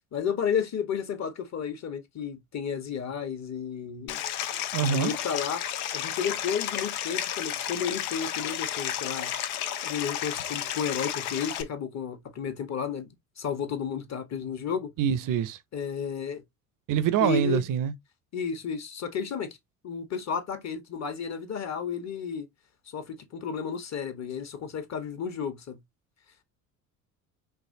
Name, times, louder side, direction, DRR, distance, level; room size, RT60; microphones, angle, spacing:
voice 1, 0.1-4.2 4.8-5.6 5.9-9.3 9.8-13.1 13.4-14.9 15.7-16.4 17.2-17.7 18.3-19.6 19.8-22.5 22.9-25.8, left 7 dB, 40° left, 1.3 m, -32 dB
Stream, 4.1-11.6, left 10 dB, 75° left, 0.7 m, -32 dB
voice 2, 4.7-5.1 15.0-15.6 16.9-17.9, right 9 dB, 50° right, 0.7 m, -25 dB
4.6 x 3.1 x 2.7 m
hypercardioid pair, 60°, 44 cm